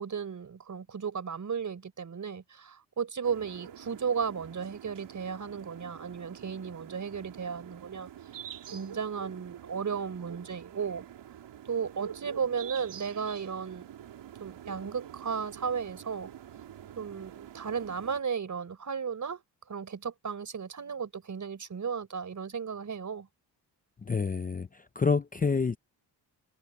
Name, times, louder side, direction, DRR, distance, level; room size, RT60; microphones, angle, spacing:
voice 1, 0.0-8.1 8.7-11.0 11.7-13.9 14.4-16.3 17.0-19.4 19.7-23.3, right 6 dB, 40° right, 4.3 m, -34 dB
sound 1, 3.2-18.2, right 9 dB, 75° right, 3.1 m, -47 dB
voice 2, 24.1-25.8, left 5 dB, 20° left, 0.6 m, -28 dB
cardioid pair, 100°, 43 cm